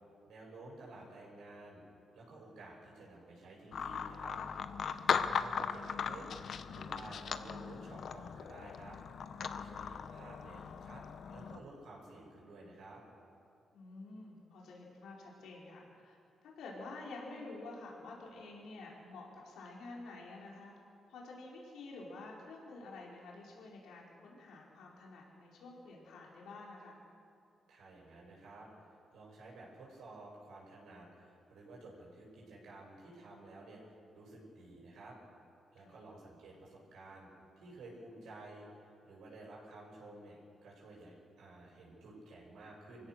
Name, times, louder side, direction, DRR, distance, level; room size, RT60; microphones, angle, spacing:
voice 1, 0.3-1.8 2.1-4.4 5.1-6.3 6.7-9.0 9.4-11.0 11.3-13.0 27.7-28.9 29.1-35.2 35.7-37.3 37.6-43.1, right 2 dB, 80° right, -4 dB, 7.5 m, -53 dB
sound 1, 3.7-11.6, left 7 dB, 55° left, 0.9 m, -38 dB
voice 2, 13.7-16.2 16.4-20.7 21.1-27.0 35.8-35.9, left 3 dB, 85° left, -3 dB, 4.4 m, -49 dB
26.0 x 16.0 x 6.6 m, 2.5 s
cardioid pair, 135°, 0 cm